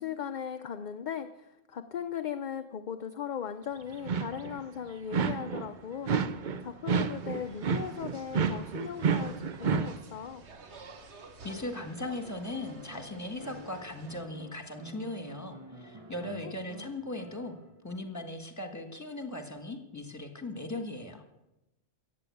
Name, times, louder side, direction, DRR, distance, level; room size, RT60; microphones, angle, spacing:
voice 1, 0.0-6.1 6.6-9.3 9.6-10.4 16.4-16.5, left 8 dB, 50° left, 9 dB, 0.7 m, -38 dB
sound 1, 3.9-4.6 5.1-5.7 6.1-10.0, right 6 dB, 50° right, 0.8 m, -30 dB
sound 2, 6.9-14.2, right 4 dB, 85° right, 1.6 m, -52 dB
voice 2, 11.4-17.6 17.8-21.2, left 2 dB, 15° left, 6 dB, 1.6 m, -38 dB
sound 3, 11.5-17.9 19.4-19.5, right 1 dB, 30° right, 1.2 m, -49 dB
15.0 x 8.6 x 8.4 m, 0.94 s
omnidirectional pair, 1.1 m